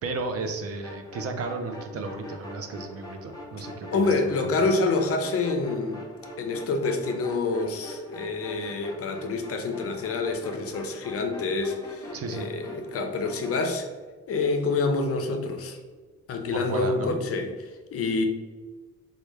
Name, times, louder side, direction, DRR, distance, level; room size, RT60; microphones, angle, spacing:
voice 1, 0.0-4.1 12.1-12.5 16.5-17.1, right 3 dB, 50° right, 0.5 m, -33 dB
sound 1, 0.8-13.6, left 1 dB, 10° left, 0.7 m, -43 dB
voice 2, 3.9-6.0 6.4-13.9 14.3-15.8 16.3-18.2, left 3 dB, 50° left, 0.5 m, -27 dB
3.3 x 2.3 x 3.1 m
cardioid pair, 90°, 30 cm